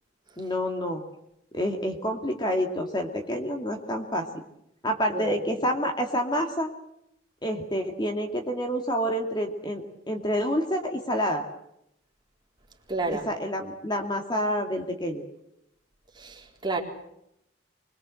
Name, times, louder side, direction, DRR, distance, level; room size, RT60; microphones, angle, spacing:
voice 1, 0.4-1.0 1.5-4.3 4.8-6.7 7.4-11.4 13.1-15.2, equal, 25° left, 4 dB, 2.4 m, -28 dB
voice 2, 12.9-13.3 16.2-16.8, right 3 dB, 25° right, 0 dB, 4.1 m, -30 dB
25.5 x 22.0 x 7.8 m, 0.79 s
head